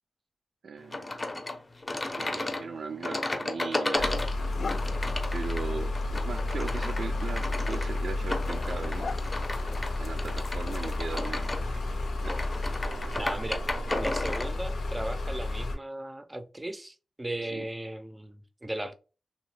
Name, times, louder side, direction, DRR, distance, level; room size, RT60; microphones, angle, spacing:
voice 1, 0.6-1.2 2.1-4.5 5.3-9.1 10.0-12.3 13.0-13.2 13.9-14.0 17.5-17.7, right 5 dB, 75° right, 0.3 m, -39 dB
sound 1, 0.9-14.5, left 2 dB, 30° left, 0.6 m, -34 dB
sound 2, 4.0-15.7, left 2 dB, 90° left, 0.7 m, -32 dB
sound 3, 4.0-11.4, left 4 dB, 65° left, 0.3 m, -44 dB
voice 2, 13.2-13.7 14.0-18.9, right 1 dB, 20° right, 0.5 m, -36 dB
2.9 x 2.2 x 3.2 m
cardioid pair, 65°, 0 cm